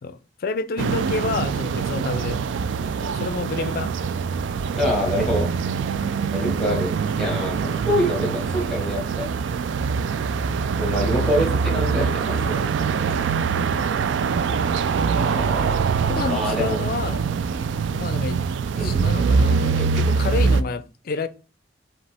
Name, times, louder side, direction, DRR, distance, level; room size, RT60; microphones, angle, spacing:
voice 1, 0.0-2.4 2.9-3.9 5.9-6.2 9.7-9.8 13.1-13.2 15.1-15.5 16.0-17.2 17.9-18.4 18.8-21.3, left 4 dB, 55° left, 0.4 m, -29 dB
sound 1, 0.8-20.6, right 5 dB, 80° right, 0.3 m, -23 dB
voice 2, 4.7-5.5 6.3-6.9 7.2-9.2 10.8-12.7 15.1-16.8 18.7-18.9, equal, 5° left, 1.7 m, -26 dB
5.0 x 2.8 x 3.4 m
head